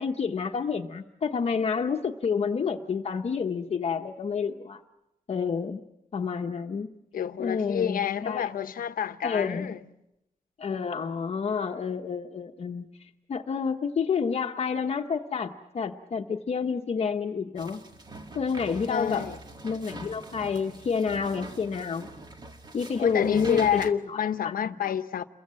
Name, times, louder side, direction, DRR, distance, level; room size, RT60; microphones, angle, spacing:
voice 1, 0.0-4.8 5.3-5.8 6.1-6.9 7.4-8.5 9.2-9.7 10.6-17.8 18.3-19.3 19.6-22.1 22.7-24.2 24.4-24.7, left 6 dB, 45° left, 1.0 m, -29 dB
voice 2, 7.1-9.8 18.9-19.4 23.0-25.2, left 8 dB, 85° left, 1.0 m, -28 dB
sound 1, 17.6-23.9, right 2 dB, 30° right, 2.0 m, -43 dB
29.5 x 23.0 x 7.6 m
wide cardioid pair, 180°, 14 cm